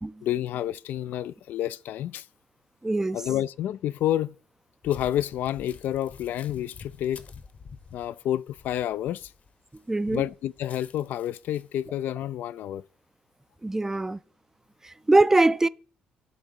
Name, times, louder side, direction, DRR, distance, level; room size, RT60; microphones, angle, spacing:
voice 1, 0.2-2.3 3.1-4.3 4.8-7.3 7.9-9.3 10.1-12.9, left 12 dB, 70° left, 0.3 m, -29 dB
voice 2, 2.8-3.2 9.9-10.2 13.6-14.2 14.8-15.7, right 2 dB, 15° right, 0.4 m, -22 dB
sound 1, 4.8-9.8 10.1-11.8, left 5 dB, 50° left, 1.0 m, -49 dB
11.0 x 3.6 x 7.0 m
supercardioid pair, 65°, 3 cm